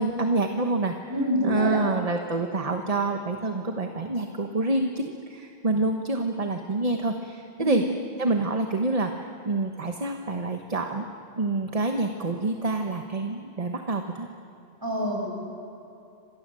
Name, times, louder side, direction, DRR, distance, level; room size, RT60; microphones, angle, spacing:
voice 1, 0.0-0.9 1.4-7.8 8.2-11.1 11.4-14.3, right 2 dB, 35° right, 4 dB, 1.3 m, -27 dB
voice 2, 1.1-1.8 7.6-7.8 14.8-15.3, left 1 dB, 20° right, -1 dB, 7.1 m, -26 dB
29.0 x 26.0 x 7.7 m, 2.8 s
omnidirectional pair, 1.0 m